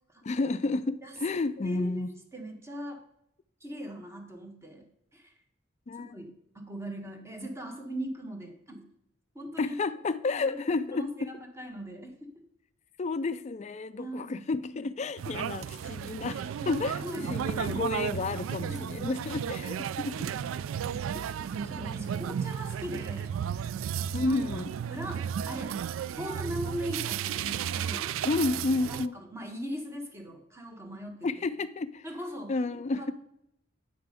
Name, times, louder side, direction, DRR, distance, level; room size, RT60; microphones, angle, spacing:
voice 1, 0.2-2.1 5.9-6.2 9.6-11.3 13.0-20.3 21.1-21.4 21.8-22.0 24.1-24.7 28.2-29.1 31.2-32.1 32.5-33.1, left 3 dB, 35° left, 0.4 m, -31 dB
voice 2, 1.6-3.0 3.6-4.8 5.1-5.3 6.0-8.9 9.3-9.7 10.4-12.3 14.0-14.4 16.6-17.8 18.7-19.1 21.6-23.3 24.2-24.6 24.9-25.8 26.1-28.1 28.9-31.3 32.0-32.6 32.9-33.1, equal, 15° right, 1.3 m, -40 dB
sound 1, 15.2-29.1, right 8 dB, 90° right, 0.3 m, -34 dB
8.5 x 6.0 x 5.0 m
head